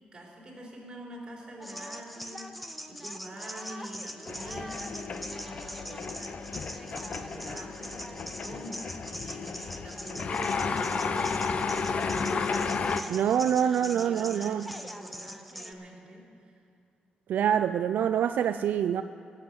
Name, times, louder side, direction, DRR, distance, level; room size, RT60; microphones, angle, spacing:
voice 1, 0.1-12.5 12.8-16.6, right 1 dB, 25° right, -2 dB, 3.6 m, -46 dB
sound 1, 1.6-15.7, equal, ahead, 0.6 m, -42 dB
sound 2, 4.3-13.0, left 5 dB, 40° left, 0.6 m, -33 dB
voice 2, 13.1-14.7 17.3-19.0, right 9 dB, 70° right, 10 dB, 0.3 m, -25 dB
16.0 x 8.0 x 8.0 m, 2.5 s
cardioid pair, 140°, 3 cm